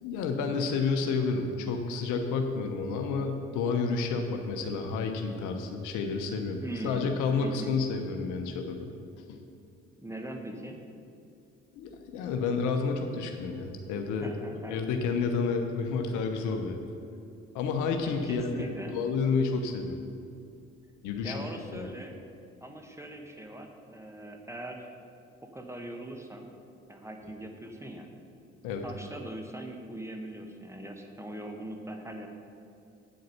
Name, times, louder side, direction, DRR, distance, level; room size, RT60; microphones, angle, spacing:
voice 1, 0.0-6.6 6.8-8.9 9.3-9.4 11.7-16.8 17.5-20.0 21.0-21.4 21.7-21.9 28.6-28.9, left 4 dB, 60° left, 5 dB, 0.9 m, -30 dB
voice 2, 6.6-7.1 7.4-7.7 10.0-10.8 14.2-14.8 18.2-19.0 21.2-22.2 22.6-24.9 25.4-26.5 26.9-28.1 28.8-32.3, right 1 dB, 10° right, 3 dB, 1.3 m, -41 dB
8.4 x 7.8 x 5.4 m, 2.5 s
figure-of-eight pair, 45°, 34 cm